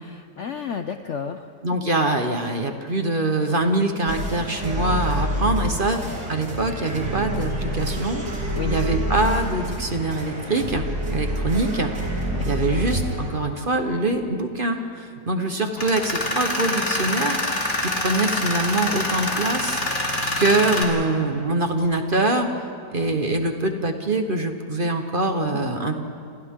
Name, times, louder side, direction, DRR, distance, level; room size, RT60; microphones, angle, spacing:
voice 1, 0.0-1.5 8.6-8.8 12.3-12.4 25.3-25.7, left 7 dB, 60° left, 8 dB, 0.8 m, -32 dB
voice 2, 1.6-6.0 6.3-11.9 12.4-17.4 17.8-19.8 20.4-22.6 22.9-25.9, right 2 dB, 35° right, 5 dB, 1.2 m, -24 dB
sound 1, 4.1-13.3, equal, 60° right, 4.8 m, -27 dB
Tools, 15.8-20.8, left 1 dB, 25° left, 2.9 m, -25 dB
28.0 x 28.0 x 3.7 m, 2.4 s
omnidirectional pair, 1.9 m